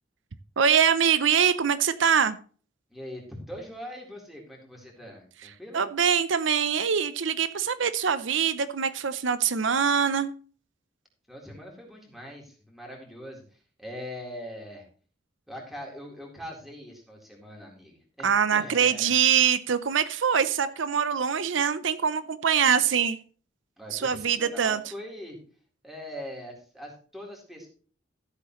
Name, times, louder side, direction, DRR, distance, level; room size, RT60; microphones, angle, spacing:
voice 1, 0.6-2.4 5.7-10.3 18.2-23.2 23.9-24.8, right 7 dB, 75° right, 0.7 m, -24 dB
voice 2, 2.9-5.8 11.3-13.4 13.8-14.9 15.5-19.1 23.8-25.4 25.8-27.7, equal, ahead, 3.9 m, -42 dB
14.0 x 8.3 x 3.1 m
head